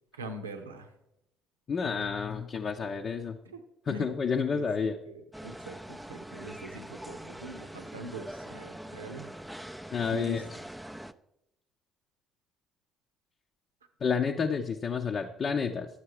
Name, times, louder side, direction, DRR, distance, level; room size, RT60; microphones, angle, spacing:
voice 1, 0.1-0.9 3.4-3.6 3.9-4.1 4.5-9.3 10.1-10.4, right 1 dB, 85° right, 6 dB, 0.8 m, -42 dB
voice 2, 1.7-3.4 3.9-5.0 9.9-10.4 14.0-15.9, left 6 dB, 45° left, 2 dB, 0.7 m, -30 dB
sound 1, 5.3-11.1, right 1 dB, 5° right, 0.5 m, -43 dB
11.5 x 8.2 x 4.8 m, 0.86 s
figure-of-eight pair, 50°, 0 cm